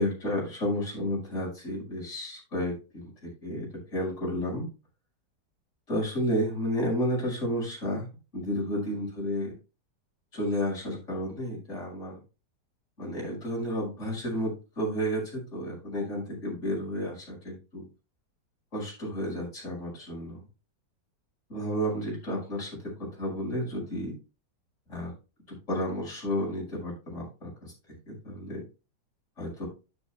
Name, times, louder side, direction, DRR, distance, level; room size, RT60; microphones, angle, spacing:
voice 1, 0.0-3.1 3.4-4.7 5.9-8.1 8.3-9.5 10.3-12.2 13.0-17.8 18.7-20.4 21.5-24.1 24.9-25.1 25.7-27.7 28.1-28.6 29.4-29.7, equal, 40° left, -4 dB, 5.8 m, -31 dB
12.0 x 9.4 x 2.2 m, 0.31 s
omnidirectional pair, 1.9 m